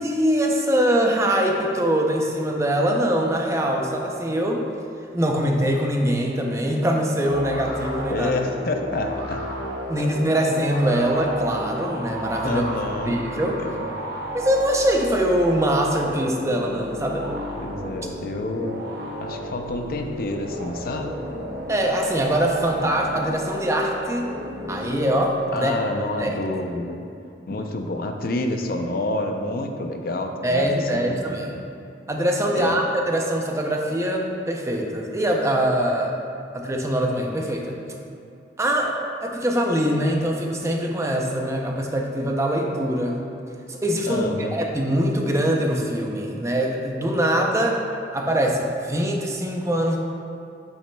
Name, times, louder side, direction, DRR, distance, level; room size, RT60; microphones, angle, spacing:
voice 1, 0.0-4.6 5.1-8.3 9.9-12.6 13.0-13.6 14.3-17.4 21.7-24.3 24.7-25.7 26.2-26.4 30.4-31.5 32.1-36.2 36.5-37.8 38.6-43.2 43.7-44.2 44.5-47.8 48.1-50.0, equal, 15° right, 1 dB, 0.5 m, -23 dB
sound 1, 7.3-25.7, equal, 60° right, 0.9 m, -33 dB
voice 2, 8.1-9.4 10.0-10.1 12.4-13.2 13.6-13.8 17.6-18.8 19.2-21.1 25.5-27.0 27.5-31.2 32.6-32.8 44.0-44.5, left 2 dB, 50° left, 4 dB, 0.5 m, -28 dB
8.1 x 7.1 x 2.2 m, 2.6 s
head